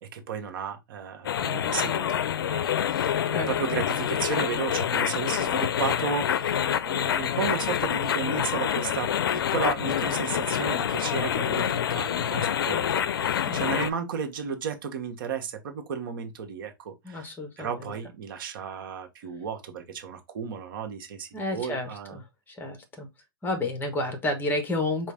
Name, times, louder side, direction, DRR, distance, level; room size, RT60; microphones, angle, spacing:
voice 1, 0.0-2.2 2.5-9.1 9.5-22.2, right 7 dB, 70° right, 1.1 m, -34 dB
sound 1, 1.2-13.9, left 9 dB, 85° left, 0.4 m, -27 dB
voice 2, 13.4-13.9 17.0-17.9 21.3-23.1 23.4-25.1, left 2 dB, 15° left, 1.3 m, -31 dB
5.0 x 2.5 x 3.5 m
hypercardioid pair, 115°, 12 cm